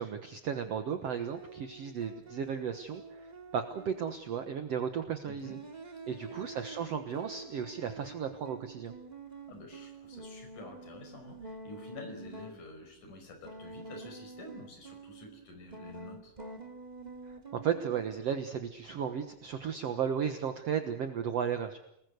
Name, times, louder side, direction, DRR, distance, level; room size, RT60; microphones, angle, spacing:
voice 1, 0.0-5.6 6.1-8.9 17.3-21.8, right 7 dB, 55° right, 7 dB, 2.0 m, -35 dB
sound 1, 0.6-4.4 5.4-12.6 13.4-15.5 15.7-18.2, right 3 dB, 15° right, 2.1 m, -48 dB
voice 2, 5.2-5.6 6.1-6.4 9.5-16.3, left 2 dB, 60° left, 6 dB, 6.6 m, -49 dB
29.0 x 20.5 x 8.1 m, 0.78 s
omnidirectional pair, 4.0 m